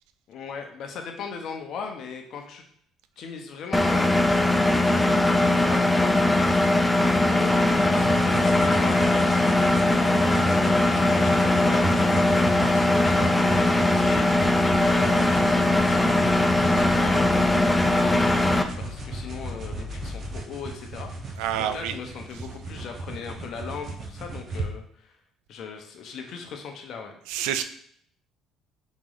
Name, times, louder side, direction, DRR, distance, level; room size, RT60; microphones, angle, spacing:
voice 1, 0.3-2.6 3.2-4.5 4.8-7.0 7.2-25.1 25.5-27.1, left 5 dB, 65° left, 3 dB, 0.8 m, -38 dB
Engine, 3.7-18.6, left 2 dB, 10° left, 0.4 m, -20 dB
sound 1, 8.0-24.7, right 3 dB, 50° right, 0.7 m, -36 dB
sound 2, 14.3-20.4, left 3 dB, 30° left, 1.0 m, -40 dB
voice 2, 21.4-21.9 27.3-27.6, right 10 dB, 85° right, 10 dB, 0.3 m, -27 dB
4.0 x 3.1 x 3.9 m, 0.64 s
supercardioid pair, 85°, 0 cm